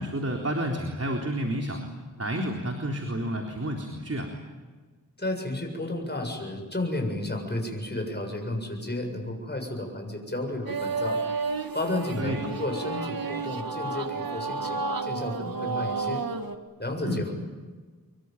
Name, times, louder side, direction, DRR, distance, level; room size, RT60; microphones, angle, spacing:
voice 1, 0.0-1.8 2.2-4.3 12.2-12.5 17.0-17.2, right 1 dB, 45° right, 2 dB, 3.9 m, -30 dB
voice 2, 5.2-11.2 11.7-16.2 16.8-17.3, left 1 dB, 30° left, 3 dB, 7.3 m, -32 dB
sound 1, 10.7-16.5, right 4 dB, 80° right, 1.8 m, -31 dB
26.0 x 23.0 x 9.4 m, 1.4 s
wide cardioid pair, 55°, 34 cm